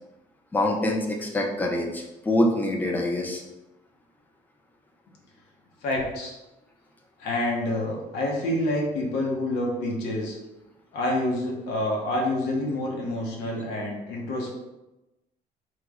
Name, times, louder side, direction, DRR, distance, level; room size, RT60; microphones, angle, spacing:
voice 1, 0.5-3.4, left 1 dB, 10° left, 0 dB, 0.3 m, -25 dB
voice 2, 5.8-6.3 7.2-10.4 10.9-14.5, left 1 dB, 90° left, -1 dB, 0.8 m, -27 dB
3.1 x 2.0 x 3.5 m, 0.99 s
cardioid pair, 170°, 16 cm